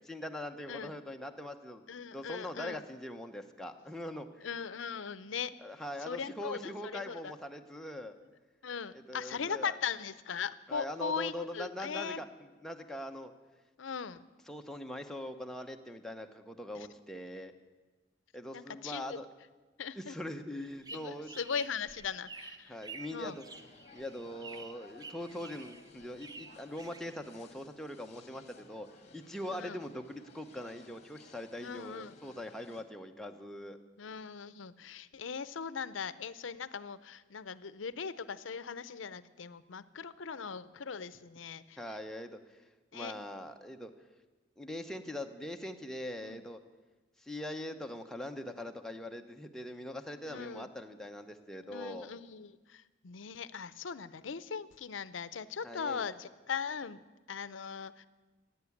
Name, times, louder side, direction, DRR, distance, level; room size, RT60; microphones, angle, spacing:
voice 1, 0.1-1.8 2.1-4.5 5.6-8.2 9.1-9.8 10.7-13.3 14.5-17.5 18.3-19.3 20.0-21.4 22.7-23.4 23.9-28.9 29.1-33.8 41.8-42.6 42.9-43.9 44.6-46.6 47.2-52.1 55.6-56.1, left 1 dB, 5° left, 4 dB, 0.9 m, -42 dB
voice 2, 1.9-2.8 4.4-5.6 6.0-7.3 8.6-12.2 13.8-14.3 16.7-16.9 18.5-19.2 19.8-20.2 20.9-22.8 23.1-23.4 29.5-29.8 31.6-32.1 34.0-41.8 42.9-43.1 46.2-46.4 50.3-50.7 51.6-57.0 57.3-58.1, left 6 dB, 85° left, 16 dB, 0.6 m, -39 dB
sound 1, 20.6-27.6, right 4 dB, 20° right, 0.5 m, -50 dB
sound 2, 23.2-32.8, left 3 dB, 35° left, 1.3 m, -58 dB
16.0 x 9.3 x 8.5 m, 1.2 s
head